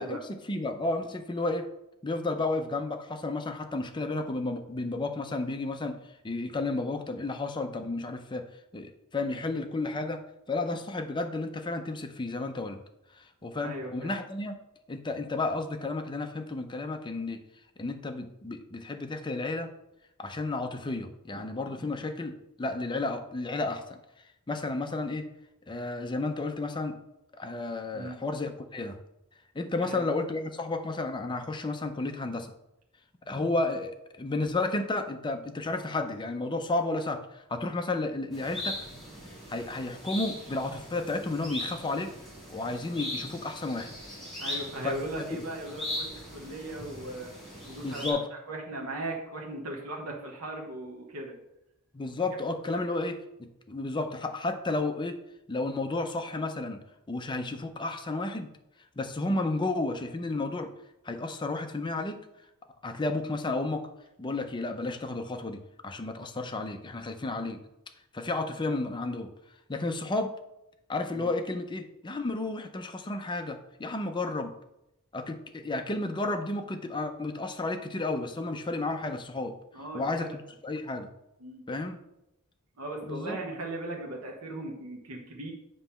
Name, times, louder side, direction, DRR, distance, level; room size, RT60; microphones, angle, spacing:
voice 1, 0.0-1.7 2.0-8.4 8.7-10.2 10.5-12.8 13.2-14.6 14.9-17.4 17.8-19.7 20.2-24.0 24.5-25.3 25.7-26.9 27.3-29.0 29.5-32.5 33.3-38.8 39.5-42.1 42.5-43.9 44.8-45.5 47.8-48.3 51.9-55.2 55.5-56.8 57.1-58.5 59.0-60.7 61.0-62.2 62.8-63.9 64.2-67.6 68.1-69.3 69.7-70.3 70.9-74.5 75.1-79.5 79.9-81.1 81.7-82.0 83.0-83.4, left 2 dB, 20° left, 6 dB, 0.5 m, -32 dB
voice 2, 13.6-14.1 27.9-28.2 29.8-30.0 44.4-47.3 47.7-48.1 48.5-51.3 71.1-71.3 79.7-80.3 81.4-81.6 82.8-85.5, right 1 dB, 75° right, 0 dB, 1.1 m, -38 dB
sound 1, 38.3-48.1, left 1 dB, ahead, 2.5 m, -39 dB
7.5 x 3.0 x 5.6 m, 0.85 s
head